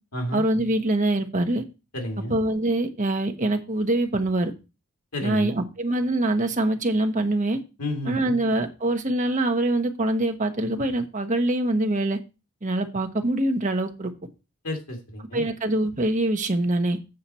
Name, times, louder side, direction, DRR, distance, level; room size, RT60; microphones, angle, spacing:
voice 1, 0.3-1.6 2.3-4.5 5.2-7.6 8.0-12.2 12.6-14.1 15.3-17.0, right 1 dB, 35° right, 6 dB, 1.0 m, -24 dB
voice 2, 1.9-2.3 5.1-5.5 7.8-8.3 14.6-15.4, left 1 dB, 80° left, 3 dB, 2.4 m, -31 dB
7.7 x 6.5 x 4.2 m, 0.28 s
head